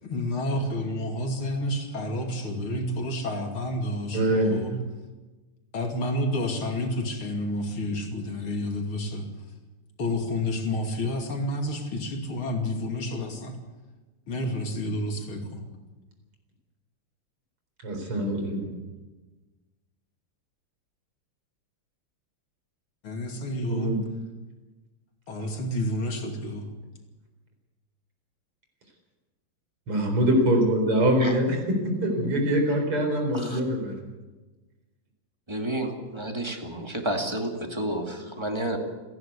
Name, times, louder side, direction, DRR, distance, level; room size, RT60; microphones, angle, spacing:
voice 1, 0.0-4.7 5.7-9.3 10.0-13.5 14.3-15.7 23.0-23.9 25.3-26.7, left 1 dB, 75° left, 2 dB, 3.5 m, -30 dB
voice 2, 4.1-4.6 17.8-18.7 23.7-24.0 29.9-34.0, right 1 dB, 80° right, 3 dB, 5.1 m, -24 dB
voice 3, 35.5-38.8, right 1 dB, 10° right, 3 dB, 2.4 m, -31 dB
29.5 x 11.0 x 8.3 m, 1.2 s
omnidirectional pair, 2.4 m